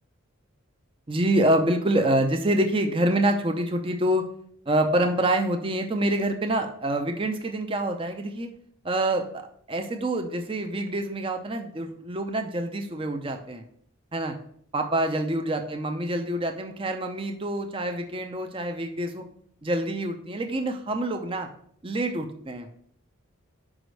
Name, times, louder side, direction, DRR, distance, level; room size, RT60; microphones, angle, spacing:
voice 1, 1.1-4.2 4.7-8.5 8.8-9.4 9.7-13.6 14.1-14.4 14.7-19.2 19.6-21.5 21.8-22.7, right 1 dB, 25° right, 5 dB, 0.6 m, -26 dB
5.2 x 4.9 x 6.2 m, 0.62 s
head